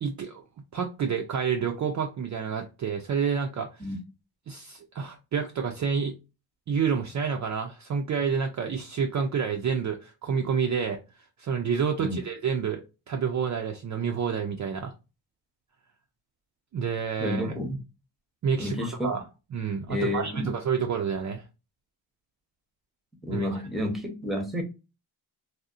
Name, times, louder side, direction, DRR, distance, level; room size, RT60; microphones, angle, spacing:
voice 1, 0.0-0.4 0.7-3.7 4.5-6.1 6.7-11.0 11.4-14.9 16.7-17.4 18.4-19.2 19.5-21.4 23.3-23.5, right 6 dB, 40° right, 0.4 m, -29 dB
voice 2, 17.2-17.8 18.6-19.1 19.9-20.5 23.2-24.6, left 1 dB, ahead, 0.7 m, -30 dB
2.7 x 2.0 x 2.4 m
cardioid pair, 90°, 45 cm